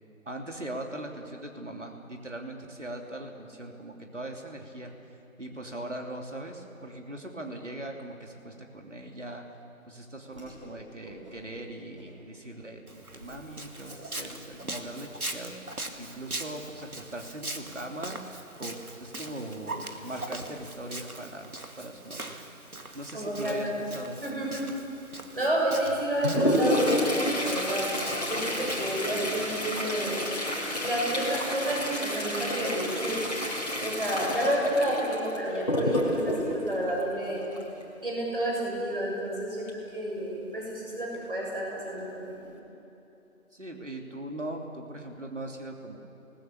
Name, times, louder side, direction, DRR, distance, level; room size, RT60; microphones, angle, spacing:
voice 1, 0.2-4.9 5.4-9.5 9.9-21.5 21.8-22.3 22.9-24.2 43.5-46.0, right 1 dB, 55° right, 2 dB, 3.1 m, -40 dB
Whoosh swoosh swish, 10.3-10.8 11.0-11.6 11.9-12.4 12.8-12.9 13.2-13.4 13.7-15.9, right 1 dB, 20° right, 6.7 m, -50 dB
Walk footsteps, 12.9-30.3, right 2 dB, 85° right, 2.1 m, -42 dB
voice 2, 23.1-23.8 24.2-24.6 25.3-27.8 28.3-30.3 30.8-33.3 33.8-37.4 38.0-39.7 39.9-42.5, right 1 dB, 40° right, -3 dB, 7.0 m, -30 dB
Toilet flush, 25.8-37.8 39.7-39.8 40.1-40.2 41.0-41.1 41.8-42.0 42.4-42.6, left 1 dB, 30° left, 3.0 m, -30 dB
27.0 x 20.0 x 7.2 m, 3.0 s
figure-of-eight pair, 175°, 43 cm